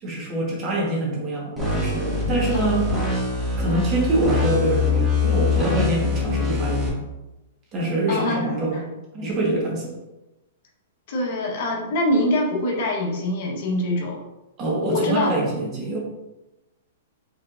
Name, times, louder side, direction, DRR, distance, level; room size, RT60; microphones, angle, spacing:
voice 1, 0.0-2.9 3.6-7.0 7.7-8.8 9.1-10.0 14.6-16.0, right 1 dB, 30° right, -3 dB, 1.5 m, -25 dB
sound 1, 1.6-6.9, left 4 dB, 5° right, 1.4 m, -23 dB
voice 2, 2.5-2.8 8.1-8.8 11.1-14.2 14.8-15.3, left 1 dB, 55° left, -1 dB, 1.2 m, -24 dB
5.5 x 3.6 x 2.6 m, 0.98 s
hypercardioid pair, 145°, 0 cm